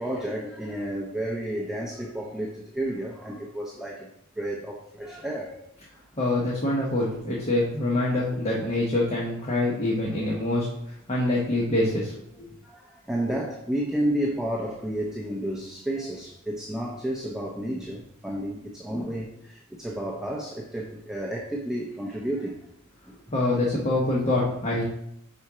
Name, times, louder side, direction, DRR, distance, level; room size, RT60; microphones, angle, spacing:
voice 1, 0.0-4.1 4.4-5.6 8.5-8.6 12.6-22.7 23.1-23.2 24.3-24.4 24.7-24.8, right 1 dB, 5° right, -2 dB, 0.7 m, -31 dB
voice 2, 6.2-10.7 11.1-12.1 12.4-12.5 23.3-24.8, left 2 dB, 30° left, -5 dB, 1.1 m, -25 dB
5.8 x 4.3 x 4.8 m, 0.76 s
head